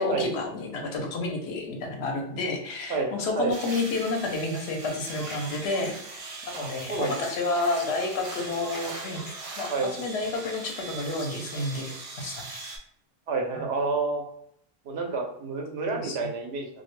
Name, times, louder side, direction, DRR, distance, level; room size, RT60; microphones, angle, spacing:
voice 1, 0.0-9.2 9.6-9.7 10.0-11.9 12.2-12.6 13.5-13.6 15.9-16.3, left 2 dB, 80° left, 2 dB, 0.9 m, -30 dB
voice 2, 2.9-3.5 6.5-7.1 9.7-9.9 13.3-14.2 14.8-16.7, right 3 dB, 85° right, 2 dB, 0.8 m, -29 dB
sound 1, 3.5-12.8, right 3 dB, 55° right, 0.4 m, -41 dB
sound 2, 5.1-5.9 6.8-9.3 10.2-12.0, left 3 dB, 50° left, 0.6 m, -44 dB
2.3 x 2.1 x 3.0 m, 0.70 s
omnidirectional pair, 1.1 m